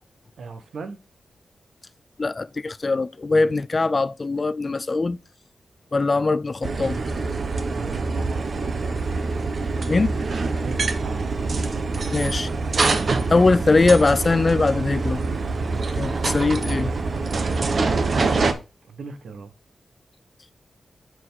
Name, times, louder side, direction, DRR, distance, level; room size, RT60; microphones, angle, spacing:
voice 1, 0.4-1.0 7.7-8.3 10.5-11.3 18.1-19.5, right 4 dB, 75° right, 1.3 m, -39 dB
voice 2, 2.2-5.2 5.9-7.0 9.9-10.1 12.1-12.5 13.3-15.2 16.0-16.9, left 3 dB, 30° left, 0.3 m, -21 dB
sound 1, 6.6-18.5, right 3 dB, 45° right, 0.9 m, -25 dB
7.5 x 4.8 x 4.0 m
wide cardioid pair, 155°, 0 cm